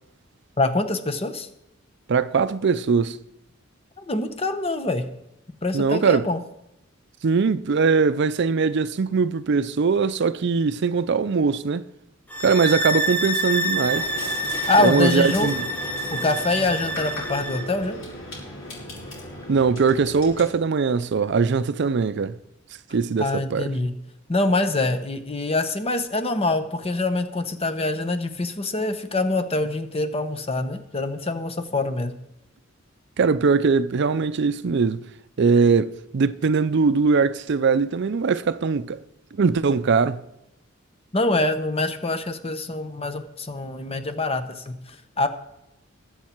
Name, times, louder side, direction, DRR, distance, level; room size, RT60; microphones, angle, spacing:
voice 1, 0.6-1.5 4.0-5.1 5.6-6.4 14.7-15.5 16.1-18.0 23.2-23.9 24.3-32.1 41.1-44.8 45.2-45.3, left 2 dB, 30° left, 1.0 m, -25 dB
voice 2, 2.1-3.2 5.7-6.3 7.2-11.9 12.4-14.1 14.8-15.7 19.5-22.4 22.9-23.7 33.2-35.0 35.4-39.0 39.4-40.2, right 5 dB, 60° right, 0.5 m, -21 dB
sound 1, 12.3-17.7, right 1 dB, 10° left, 1.0 m, -27 dB
sound 2, 13.8-20.4, left 1 dB, 70° left, 5.9 m, -36 dB
21.0 x 7.4 x 4.5 m
head